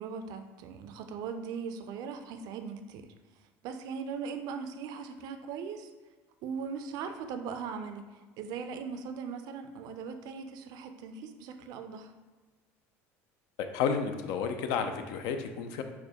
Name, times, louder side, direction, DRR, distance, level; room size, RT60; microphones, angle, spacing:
voice 1, 0.0-3.1 3.6-5.9 6.4-12.1, right 6 dB, 65° right, 7 dB, 0.4 m, -39 dB
voice 2, 13.6-15.8, left 6 dB, 70° left, 7 dB, 0.4 m, -31 dB
4.7 x 2.1 x 2.8 m, 1.3 s
supercardioid pair, 85°, 7 cm